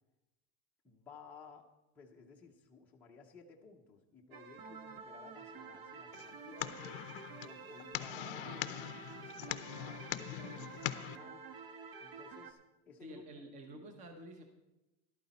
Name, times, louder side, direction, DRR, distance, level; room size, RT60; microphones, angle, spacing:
voice 1, 0.8-1.7 1.9-7.0 7.4-11.4 12.0-13.3 13.7-13.9, left 5 dB, 5° left, -3 dB, 0.6 m, -57 dB
sound 1, 4.3-12.5, right 5 dB, 60° right, 1.3 m, -50 dB
sound 2, 6.1-11.2, left 15 dB, 50° left, 0.6 m, -42 dB
voice 2, 13.0-14.4, right 1 dB, 20° right, 5 dB, 0.9 m, -50 dB
13.0 x 12.0 x 4.1 m, 1.0 s
supercardioid pair, 180°, 35 cm